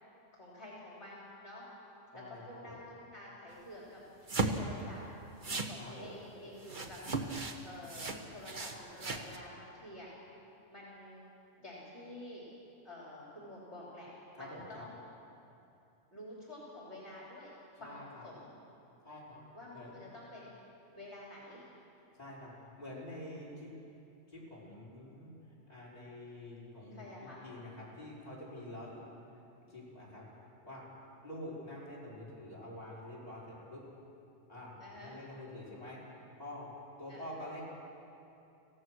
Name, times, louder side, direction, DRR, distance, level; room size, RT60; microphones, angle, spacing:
voice 1, 0.3-1.7 2.1-4.0 4.5-5.0 5.6-7.0 7.6-10.1 10.7-11.2 11.6-12.4 12.8-15.0 16.1-18.5 19.5-20.5 21.0-21.6 26.9-27.4 34.8-35.1 37.1-37.3, left 1 dB, 60° left, -6 dB, 4.0 m, -49 dB
voice 2, 2.1-2.7 5.8-6.1 14.4-14.9 17.8-18.3 19.0-19.4 19.7-19.9 22.1-23.7 24.3-29.0 29.3-29.4 29.7-30.8 31.2-33.8 34.5-36.0 36.4-36.7 37.0-37.6, left 1 dB, 30° left, -7 dB, 5.6 m, -47 dB
sound 1, 4.3-4.8 5.4-5.7 6.6-7.6 7.8-9.4, right 3 dB, 40° right, 1.4 m, -36 dB
25.5 x 16.0 x 6.4 m, 2.8 s
omnidirectional pair, 1.3 m